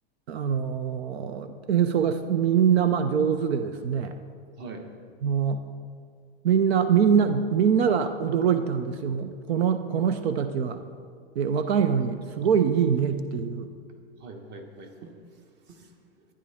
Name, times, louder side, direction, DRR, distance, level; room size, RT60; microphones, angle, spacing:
voice 1, 0.3-4.2 5.2-5.6 6.4-10.8 11.4-13.7, right 7 dB, 80° right, 10 dB, 0.7 m, -24 dB
voice 2, 14.2-16.3, right 3 dB, 35° right, 5 dB, 1.3 m, -44 dB
12.5 x 9.8 x 3.5 m, 2.1 s
hypercardioid pair, 130°, 31 cm